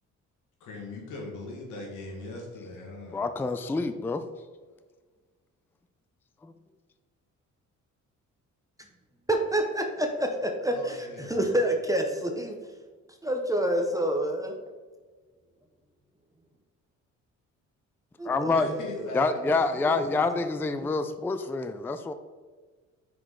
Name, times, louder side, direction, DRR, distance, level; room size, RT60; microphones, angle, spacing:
voice 1, 0.6-3.2 10.7-11.7 18.5-19.2 19.7-20.5, left 2 dB, 85° left, 0 dB, 1.9 m, -40 dB
voice 2, 3.1-4.3 6.4-6.5 18.2-18.7 19.1-22.1, left 3 dB, 5° left, 10 dB, 0.3 m, -27 dB
voice 3, 9.3-12.6 13.2-14.5 18.2-19.1 19.4-19.5, right 1 dB, 10° right, 2 dB, 0.7 m, -28 dB
5.8 x 5.0 x 3.8 m, 1.4 s
cardioid pair, 90°, 30 cm